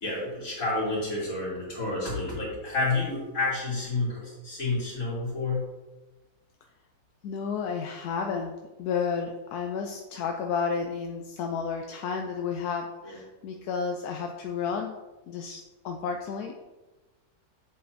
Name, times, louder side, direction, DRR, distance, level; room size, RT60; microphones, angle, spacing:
voice 1, 0.0-5.7 13.0-13.2, left 3 dB, 65° left, -6 dB, 3.2 m, -30 dB
voice 2, 7.2-15.0 15.3-16.7, left 6 dB, 85° left, 3 dB, 1.2 m, -32 dB
7.9 x 7.6 x 2.7 m, 1.1 s
omnidirectional pair, 1.6 m